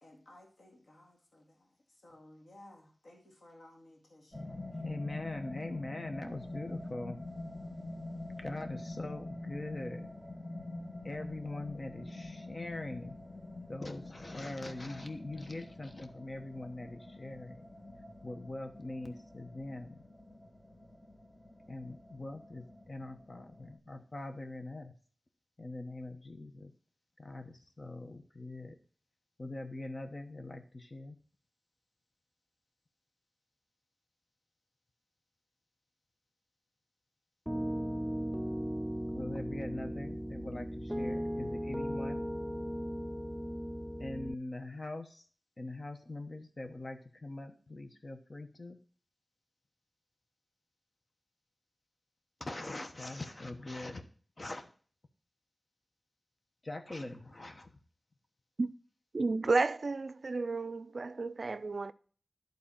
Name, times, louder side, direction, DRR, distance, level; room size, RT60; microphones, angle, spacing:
voice 1, 0.0-4.8, left 1 dB, 90° left, 2.0 m, -58 dB
sound 1, 4.3-23.8, left 2 dB, 15° left, 1.3 m, -46 dB
voice 2, 4.8-7.2 8.4-10.1 11.0-13.2 13.7-17.6 18.2-20.0 21.7-24.9 25.6-26.7 27.2-28.8 29.4-31.2 39.1-42.2 44.0-45.3 45.6-48.8 52.4-54.1 54.4-54.7 56.6-57.8, left 2 dB, 50° left, 1.2 m, -42 dB
Piano, 37.5-44.3, equal, 5° right, 0.4 m, -37 dB
voice 3, 59.1-61.9, right 3 dB, 70° right, 0.4 m, -32 dB
11.5 x 3.9 x 5.6 m
wide cardioid pair, 60°, 0 cm